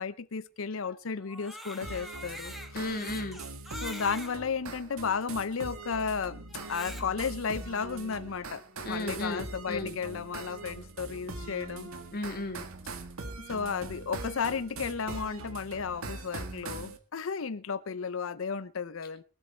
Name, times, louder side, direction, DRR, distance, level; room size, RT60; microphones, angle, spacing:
voice 1, 0.0-3.0 3.8-6.4 6.7-8.6 8.9-11.9 13.5-19.2, left 5 dB, 70° left, 16 dB, 0.6 m, -33 dB
Crying sobbing, 1.2-4.3 5.1-5.2 6.5-7.3, equal, ahead, 2.2 m, -44 dB
sound 1, 1.8-17.0, right 2 dB, 85° right, 1.8 m, -42 dB
voice 2, 2.7-3.4 8.8-9.9 12.1-12.6, left 1 dB, 45° left, 5 dB, 2.2 m, -34 dB
22.5 x 8.1 x 4.4 m, 0.36 s
head